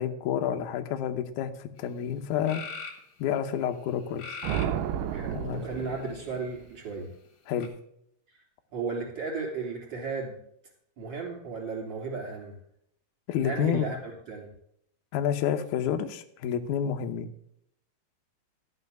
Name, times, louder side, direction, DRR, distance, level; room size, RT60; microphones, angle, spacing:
voice 1, 0.0-2.6 3.2-4.3 5.3-5.6 7.5-7.7 13.3-13.8 15.1-17.3, left 9 dB, 90° left, 6 dB, 1.7 m, -29 dB
sound 1, 1.8-1.9 2.5-3.0 4.2-4.8 5.6-6.3 7.6-7.7, left 5 dB, 60° left, 2.9 m, -40 dB
sound 2, 4.4-6.7, right 9 dB, 85° right, 1.9 m, -32 dB
voice 2, 5.1-7.1 8.3-8.4 8.7-10.4 11.0-12.6 13.4-14.5, right 4 dB, 30° right, 0 dB, 3.3 m, -35 dB
12.0 x 5.6 x 6.7 m, 0.70 s
omnidirectional pair, 4.7 m